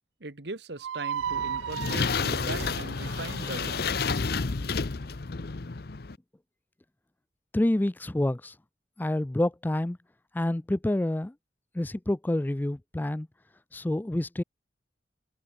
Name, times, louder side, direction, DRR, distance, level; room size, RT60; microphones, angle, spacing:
voice 1, 0.2-3.8, right 2 dB, 65° right, 1.6 m, -39 dB
sound 1, 0.8-4.0, right 8 dB, 80° right, 0.3 m, -35 dB
sound 2, 1.2-6.2, left 4 dB, 55° left, 0.8 m, -30 dB
voice 2, 7.5-8.6 9.0-10.0 10.3-11.3 11.7-13.3 13.7-14.4, left 1 dB, 10° left, 0.3 m, -28 dB
head